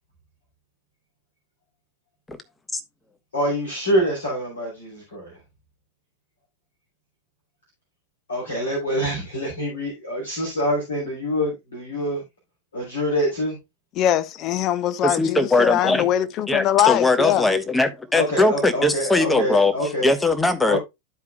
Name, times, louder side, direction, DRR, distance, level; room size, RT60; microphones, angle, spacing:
voice 1, 3.3-5.3 8.3-12.2 12.7-13.6 18.1-20.1 20.7-20.8, equal, 70° left, 3.4 m, -25 dB
voice 2, 14.0-17.5, left 11 dB, 35° left, 0.6 m, -22 dB
voice 3, 15.0-16.1 16.5-20.8, left 2 dB, 10° left, 1.0 m, -20 dB
13.0 x 4.7 x 2.2 m
figure-of-eight pair, 90°, 0 cm